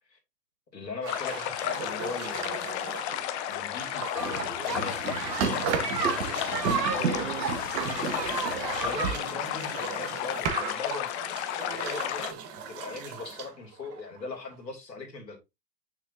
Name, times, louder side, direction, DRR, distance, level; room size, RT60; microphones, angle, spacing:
voice 1, 0.7-5.0 8.8-15.4, left 4 dB, 85° left, 2.7 m, -40 dB
sound 1, 1.0-14.5, right 7 dB, 30° right, 1.2 m, -38 dB
sound 2, 1.1-12.3, left 12 dB, 45° left, 0.8 m, -33 dB
sound 3, 4.2-9.2, right 5 dB, 80° right, 1.5 m, -31 dB
voice 2, 7.0-7.9 8.3-9.8, right 9 dB, 50° right, 1.6 m, -42 dB
6.6 x 6.2 x 2.6 m
hypercardioid pair, 110°, 49 cm